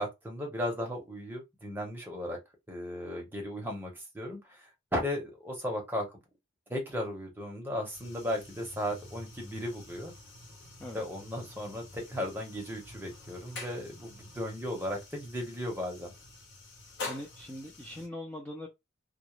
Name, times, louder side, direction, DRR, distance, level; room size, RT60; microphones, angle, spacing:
voice 1, 0.0-2.4 2.7-6.1 6.7-10.1 10.9-16.1, left 1 dB, 10° right, 0.7 m, -36 dB
sound 1, 7.9-18.1, left 3 dB, 55° left, 0.8 m, -47 dB
voice 2, 17.0-18.7, left 1 dB, 10° left, 0.3 m, -41 dB
2.4 x 2.0 x 2.9 m
head